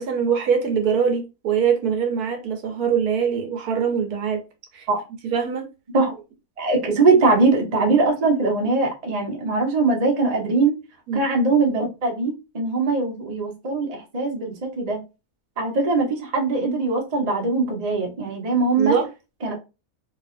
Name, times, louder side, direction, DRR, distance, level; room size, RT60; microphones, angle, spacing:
voice 1, 0.0-4.4 4.7-4.9 5.2-5.7 11.1-11.3 18.8-19.0, right 7 dB, 75° right, 1.2 m, -23 dB
voice 2, 6.6-10.7 11.1-15.0 15.6-19.0 19.4-19.6, right 3 dB, 30° right, 0.8 m, -21 dB
3.9 x 2.8 x 2.5 m
omnidirectional pair, 1.7 m